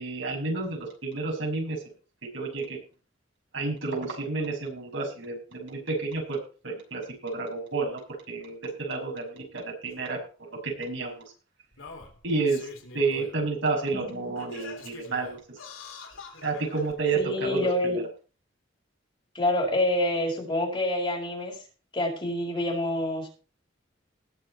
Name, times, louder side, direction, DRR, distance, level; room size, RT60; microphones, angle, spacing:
voice 1, 0.0-1.8 2.3-2.8 3.5-6.4 6.6-8.0 8.3-10.2 10.6-11.1 12.2-12.7 12.9-15.4 16.4-17.9, right 3 dB, 75° right, -1 dB, 6.6 m, -30 dB
Singing, 9.9-10.0 11.0-11.1 11.7-13.4 13.8-13.9 14.4-16.9 17.7-17.8, left 4 dB, 90° left, 3.5 m, -45 dB
voice 2, 13.9-14.3 17.1-18.0 19.3-21.6 21.9-23.3, left 1 dB, 25° left, 0 dB, 5.0 m, -27 dB
20.0 x 6.8 x 4.4 m, 0.35 s
head